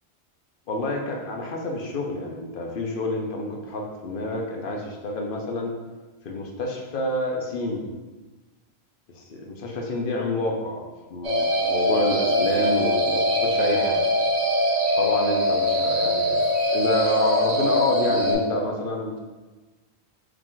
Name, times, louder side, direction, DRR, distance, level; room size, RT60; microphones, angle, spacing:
voice 1, 0.7-5.7 6.2-7.8 9.1-14.0 15.0-19.2, left 2 dB, 60° left, 0 dB, 0.8 m, -28 dB
sound 1, 11.2-18.3, equal, 90° right, 1.5 m, -22 dB
4.7 x 2.4 x 3.8 m, 1.2 s
omnidirectional pair, 1.1 m